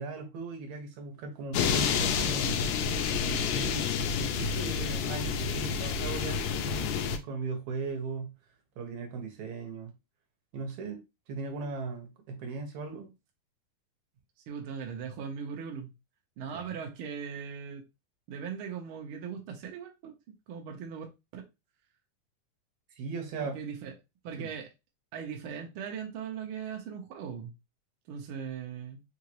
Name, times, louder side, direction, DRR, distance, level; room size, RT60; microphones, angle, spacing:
voice 1, 0.0-2.8 3.3-3.9 4.2-8.3 8.8-9.9 10.5-13.1 16.5-16.7 23.0-23.6 24.4-24.5, right 4 dB, 70° right, 2.3 m, -38 dB
sound 1, 1.5-7.2, left 6 dB, 80° left, 1.8 m, -29 dB
voice 2, 14.5-15.9 16.4-17.8 18.3-20.1 20.5-21.1 21.3-21.4 23.4-23.9 24.2-24.7 25.1-27.5 28.1-29.0, right 7 dB, 85° right, 1.2 m, -39 dB
5.1 x 2.9 x 2.9 m
omnidirectional pair, 3.7 m